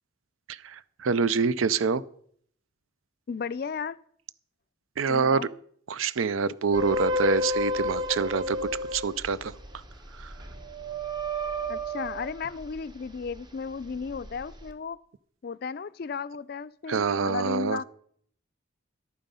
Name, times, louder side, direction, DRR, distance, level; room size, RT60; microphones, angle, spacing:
voice 1, 0.5-2.0 5.0-5.5 5.9-8.6 8.9-9.5 10.1-10.3 16.9-17.8, right 5 dB, 85° right, 0.5 m, -26 dB
voice 2, 3.3-4.0 5.1-5.5 11.7-15.0 15.4-17.8, left 5 dB, 50° left, 0.4 m, -34 dB
Metal stretch and scrape Two, 6.7-13.4 13.8-14.7, left 1 dB, 20° right, 1.0 m, -32 dB
11.0 x 9.0 x 5.5 m
head